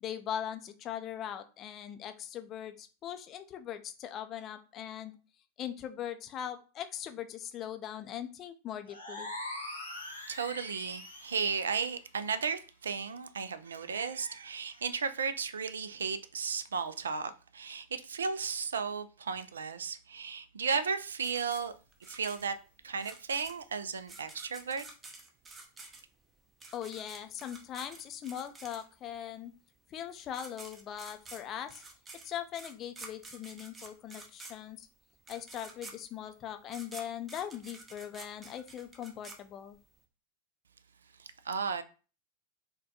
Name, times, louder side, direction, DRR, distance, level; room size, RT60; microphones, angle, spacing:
voice 1, 0.0-5.2 5.6-9.3 26.7-29.5 29.9-31.8 32.2-34.9 35.3-39.8, left 10 dB, 30° left, 0.4 m, -40 dB
sound 1, 8.9-11.6, left 1 dB, 85° left, 1.0 m, -42 dB
voice 2, 10.2-21.7 22.1-22.5 22.8-24.8 41.2-41.8, right 5 dB, 70° right, 0.3 m, -34 dB
sound 2, 21.2-29.2 30.0-30.1 30.3-40.0, right 3 dB, 15° right, 0.6 m, -50 dB
4.2 x 2.2 x 2.7 m
figure-of-eight pair, 90°, 0 cm